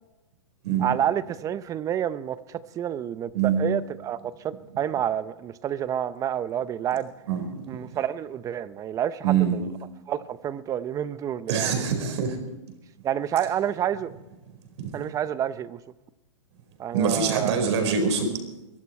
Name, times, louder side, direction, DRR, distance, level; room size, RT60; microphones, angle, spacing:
voice 1, 0.8-7.1 7.7-9.7 10.1-11.7 13.0-14.1 14.9-15.8 16.8-17.6, right 10 dB, 20° right, 16 dB, 0.6 m, -29 dB
voice 2, 7.3-7.6 9.2-9.6 11.5-12.4 14.8-15.0 16.9-18.3, right 6 dB, 60° right, 5 dB, 4.5 m, -24 dB
22.0 x 14.0 x 4.3 m, 0.98 s
hypercardioid pair, 130°, 17 cm